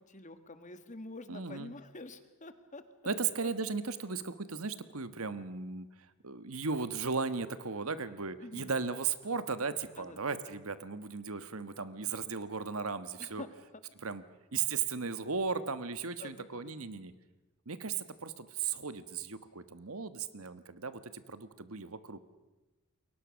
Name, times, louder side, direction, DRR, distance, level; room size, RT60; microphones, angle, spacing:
voice 1, 0.0-3.1 3.4-3.5 8.4-8.7 10.0-10.2 13.2-13.5 16.2-16.8, left 2 dB, 35° left, 10 dB, 1.6 m, -47 dB
voice 2, 1.3-1.7 3.0-5.9 6.2-13.4 14.0-14.2 14.5-17.1 17.7-22.2, right 5 dB, 70° right, 13 dB, 1.3 m, -36 dB
29.0 x 22.5 x 6.4 m, 1.1 s
head